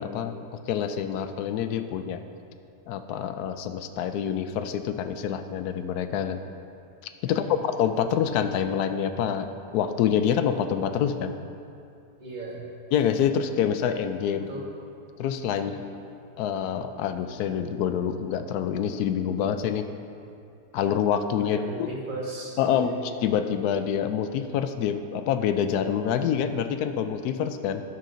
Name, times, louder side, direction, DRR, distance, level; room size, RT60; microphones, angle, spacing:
voice 1, 0.0-2.2 2.9-6.4 7.2-9.5 9.7-11.3 12.9-14.4 15.2-15.8 16.4-19.9 20.7-21.9 22.6-22.9 23.2-27.8, left 8 dB, 90° left, 9 dB, 1.1 m, -26 dB
voice 2, 7.2-7.5 12.2-12.6 14.3-14.7 15.6-15.8 21.4-23.0, right 2 dB, 30° right, -4 dB, 1.5 m, -37 dB
11.5 x 6.7 x 3.8 m, 2.5 s
omnidirectional pair, 1.6 m